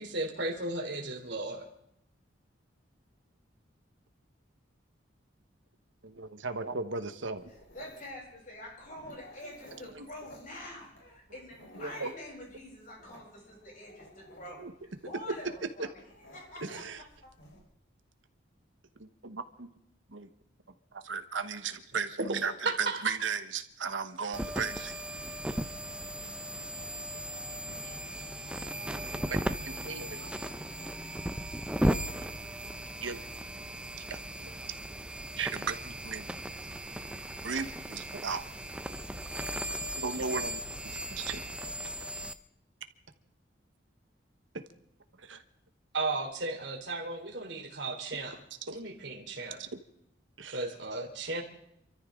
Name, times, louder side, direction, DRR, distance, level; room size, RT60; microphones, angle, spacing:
voice 1, 0.0-1.7 22.2-22.4 22.6-23.1 45.9-48.4 48.7-49.6 50.5-51.4, right 3 dB, 65° right, 2 dB, 3.3 m, -34 dB
voice 2, 6.0-7.5 10.0-10.1 11.8-12.1 14.6-14.7 15.8-15.9 16.6-17.0 19.0-19.7 20.1-20.3 20.9-25.0 25.5-25.6 27.8-28.0 29.3-29.4 29.7-30.3 33.0-33.2 34.1-34.5 35.4-36.3 37.4-38.4 40.0-40.6 41.1-41.4 44.5-44.6 45.2-45.4 48.7-48.8 49.6-49.8 50.4-50.6, right 5 dB, 80° right, 9 dB, 1.2 m, -36 dB
Dog, 7.4-17.6, left 1 dB, 70° left, 4.7 m, -56 dB
voice 3, 7.7-14.6 15.0-15.9 16.3-17.3, left 1 dB, 45° left, -3 dB, 7.9 m, -46 dB
sound 1, 24.3-42.3, right 1 dB, 5° right, 0.6 m, -36 dB
27.5 x 14.0 x 3.8 m, 0.75 s
head